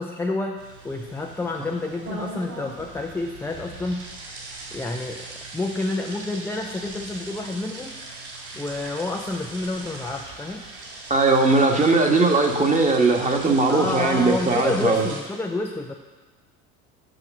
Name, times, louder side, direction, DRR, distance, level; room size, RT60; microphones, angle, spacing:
voice 1, 0.0-4.1 4.7-5.3 5.5-8.0 8.5-10.7 13.7-15.9, left 2 dB, 5° left, 1 dB, 0.5 m, -29 dB
sound 1, 0.6-15.2, right 2 dB, 55° right, 3.4 m, -39 dB
voice 2, 11.1-15.1, right 3 dB, 15° right, 3 dB, 1.4 m, -19 dB
8.1 x 6.5 x 6.1 m, 1.3 s
hypercardioid pair, 80°, 47 cm